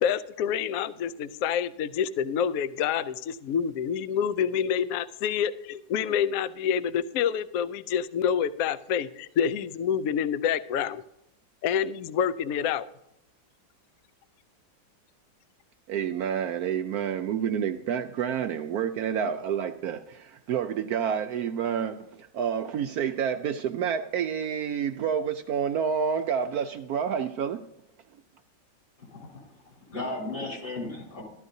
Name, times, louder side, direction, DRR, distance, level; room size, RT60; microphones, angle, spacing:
voice 1, 0.0-11.0 11.6-12.9, left 8 dB, 75° left, 14 dB, 0.8 m, -27 dB
voice 2, 15.9-27.6, right 8 dB, 75° right, 6 dB, 0.9 m, -29 dB
voice 3, 29.0-31.2, left 2 dB, 60° left, -1 dB, 4.3 m, -36 dB
14.5 x 12.5 x 2.7 m, 0.79 s
omnidirectional pair, 2.0 m